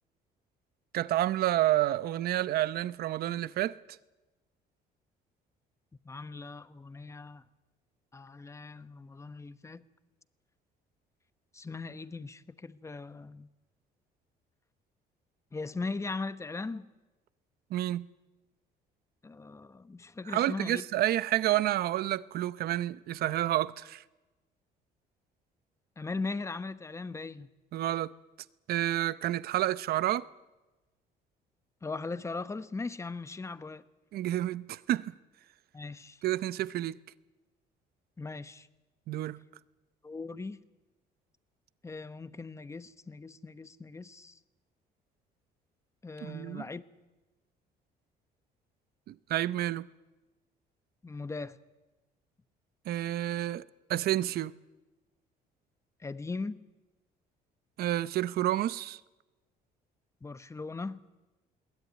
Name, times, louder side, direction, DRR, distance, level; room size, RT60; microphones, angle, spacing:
voice 1, 0.9-3.8 17.7-18.1 20.3-24.0 27.7-28.1 28.7-30.3 34.1-35.1 36.2-37.0 39.1-39.4 46.2-46.6 49.1-49.9 52.9-53.6 53.9-54.5 57.8-59.0, right 14 dB, 65° right, 0.7 m, -29 dB
voice 2, 6.0-7.4 8.1-9.8 11.5-13.5 15.5-16.9 19.2-20.9 26.0-27.5 31.8-33.8 35.7-36.2 38.2-38.7 40.0-40.6 41.8-44.4 46.0-46.8 51.0-51.6 56.0-56.6 60.2-61.0, left 3 dB, 15° left, 1.0 m, -39 dB
21.5 x 18.0 x 9.6 m
cardioid pair, 110°, 17 cm